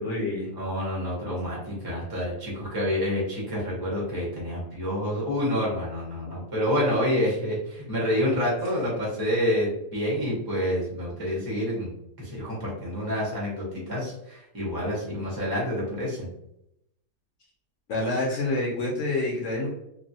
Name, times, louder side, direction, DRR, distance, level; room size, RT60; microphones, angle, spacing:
voice 1, 0.0-0.5 17.9-19.7, left 2 dB, 60° left, -3 dB, 0.8 m, -27 dB
voice 2, 0.5-11.9 12.2-16.3, equal, 20° right, -5 dB, 0.6 m, -28 dB
3.0 x 2.2 x 2.7 m, 0.82 s
omnidirectional pair, 1.8 m